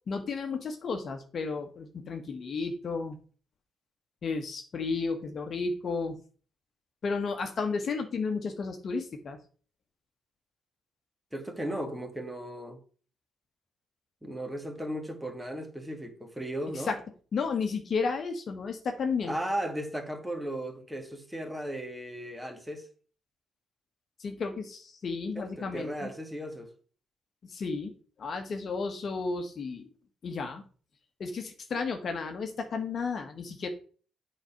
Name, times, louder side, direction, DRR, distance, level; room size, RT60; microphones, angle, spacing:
voice 1, 0.1-3.2 4.2-6.2 7.0-9.4 16.9-17.0 17.3-19.4 24.2-26.1 27.4-27.9 28.2-29.9 30.2-30.6 31.2-33.7, left 4 dB, 50° left, 1.3 m, -33 dB
voice 2, 11.3-12.8 14.2-16.9 19.3-22.9 25.4-26.7, right 1 dB, 5° right, 1.9 m, -36 dB
8.1 x 4.3 x 5.7 m
cardioid pair, 90°, 0 cm